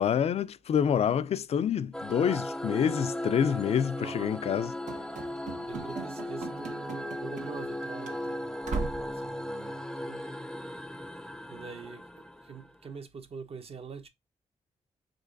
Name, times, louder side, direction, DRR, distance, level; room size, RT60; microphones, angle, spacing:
voice 1, 0.0-4.7, left 8 dB, 60° left, 0.4 m, -27 dB
sound 1, 1.9-12.9, left 1 dB, 5° left, 0.5 m, -37 dB
voice 2, 4.0-4.4 5.2-5.3 5.7-10.2 11.5-14.1, right 5 dB, 55° right, 1.0 m, -45 dB
Run / Slam, 4.9-7.8 8.0-8.2 8.6-9.1, right 4 dB, 85° right, 1.3 m, -38 dB
5.1 x 3.8 x 2.6 m
cardioid pair, 85°, 12 cm